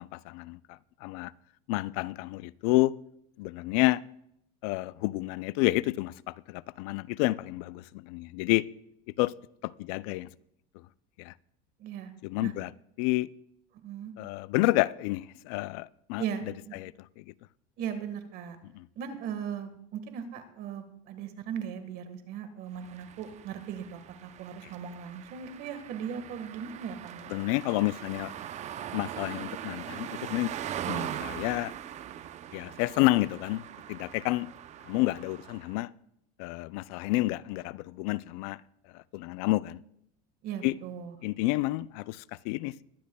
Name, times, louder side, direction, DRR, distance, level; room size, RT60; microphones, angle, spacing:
voice 1, 0.0-1.3 1.7-2.9 3.4-4.0 4.6-8.7 9.2-9.3 9.6-10.3 11.2-11.3 12.2-12.7 13.0-13.3 14.2-17.3 18.7-18.9 27.3-28.3 28.9-30.5 30.9-31.7 32.5-33.6 33.9-34.5 34.9-35.9 36.4-38.6 38.9-39.8 40.6-40.7 41.2-42.8, left 19 dB, 65° left, 0.4 m, -30 dB
voice 2, 11.8-12.1 12.4-12.5 13.8-14.1 16.2-16.7 17.8-18.6 19.0-27.3 40.4-41.1, right 8 dB, 50° right, 1.5 m, -38 dB
sound 1, 22.8-35.8, right 10 dB, 35° right, 0.6 m, -41 dB
22.0 x 10.0 x 2.3 m
supercardioid pair, 115°, 20 cm